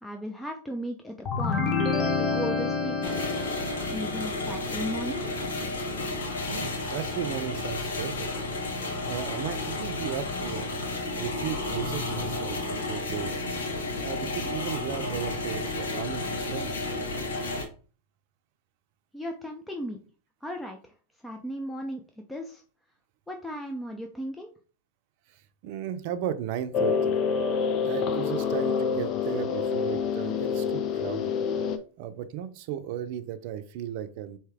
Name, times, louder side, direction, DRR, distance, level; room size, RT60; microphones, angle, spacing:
voice 1, 0.0-1.6 2.2-3.3 3.9-5.4 19.1-20.0 20.4-20.9 21.2-22.0 22.3-22.6 23.3-24.5, equal, 5° left, 3 dB, 0.6 m, -36 dB
sound 1, 1.3-4.1, left 4 dB, 30° left, 1.0 m, -28 dB
sound 2, 3.0-17.7, left 2 dB, 80° left, 1.0 m, -32 dB
voice 2, 6.4-8.3 9.1-10.8 11.1-13.4 14.0-16.9 25.6-27.1 27.8-31.3 32.0-34.4, right 10 dB, 60° right, 11 dB, 0.6 m, -35 dB
sound 3, 26.7-31.8, left 6 dB, 45° left, 0.6 m, -27 dB
4.5 x 2.8 x 3.4 m, 0.38 s
hypercardioid pair, 95°, 0 cm